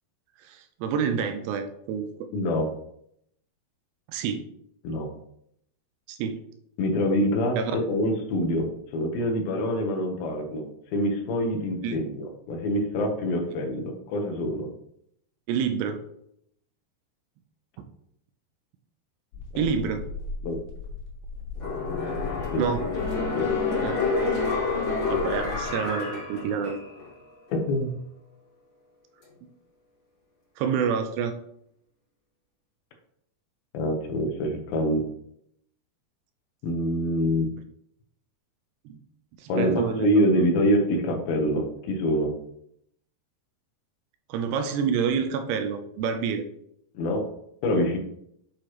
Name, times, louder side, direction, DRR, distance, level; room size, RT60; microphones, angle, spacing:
voice 1, 0.4-2.1 4.1-4.5 6.1-6.4 7.6-7.8 11.8-12.0 15.5-16.0 19.6-20.0 22.6-22.8 23.8-24.0 25.1-26.8 30.6-31.3 38.9-39.0 39.4-40.4 44.3-46.4, right 6 dB, 85° right, 6 dB, 2.8 m, -28 dB
voice 2, 2.3-2.7 4.8-5.1 6.8-8.7 8.9-14.7 20.4-20.6 22.5-22.6 23.3-23.5 27.6-27.9 33.7-35.0 36.6-37.5 39.5-42.3 46.9-47.2 47.6-48.0, equal, 70° left, 3 dB, 2.7 m, -25 dB
sound 1, 19.3-25.8, left 4 dB, 90° left, 3.7 m, -38 dB
sound 2, 21.6-27.1 27.5-27.6, left 4 dB, 40° left, 3.9 m, -28 dB
8.5 x 4.8 x 3.0 m, 0.73 s
omnidirectional pair, 4.8 m